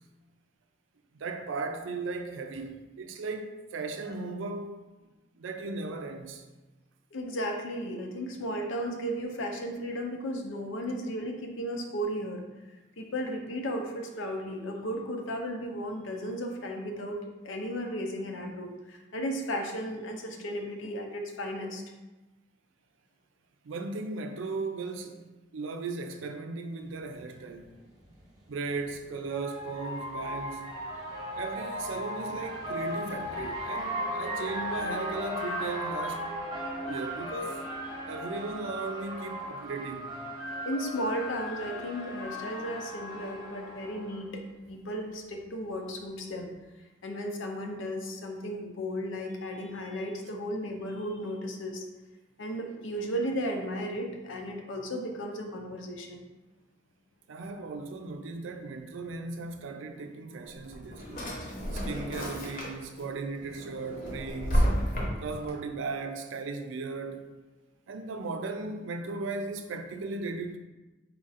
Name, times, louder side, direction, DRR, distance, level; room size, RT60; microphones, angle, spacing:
voice 1, 1.1-4.7 5.4-6.4 23.6-27.8 28.5-30.7 31.4-36.4 36.9-37.6 38.1-40.1 57.3-61.3 61.7-64.8 65.2-67.3 67.9-70.6, right 3 dB, 80° right, 0.4 m, -37 dB
voice 2, 7.1-12.4 13.0-21.8 31.1-31.3 40.6-46.5 47.0-51.8 52.4-56.3, equal, 80° left, 0.6 m, -35 dB
sound 1, 27.1-27.2 28.6-44.2, equal, 20° right, 0.9 m, -36 dB
Drawer open or close, 60.5-63.0 63.4-65.5, equal, 45° left, 0.8 m, -31 dB
4.4 x 2.5 x 4.0 m
head